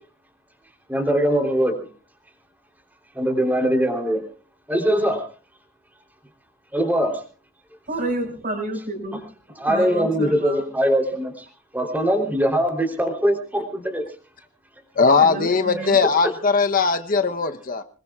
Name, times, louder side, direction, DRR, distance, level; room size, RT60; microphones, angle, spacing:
voice 1, 0.9-1.7 3.1-4.2 4.7-5.2 6.7-7.2 9.6-11.3 11.7-14.0 15.8-16.1, equal, 10° right, 3 dB, 3.3 m, -21 dB
voice 2, 7.9-10.6 15.2-16.0 16.9-17.0, right 1 dB, 45° right, 4 dB, 5.3 m, -30 dB
voice 3, 15.0-17.8, left 4 dB, 45° left, 8 dB, 0.9 m, -19 dB
25.5 x 20.5 x 2.4 m, 0.38 s
head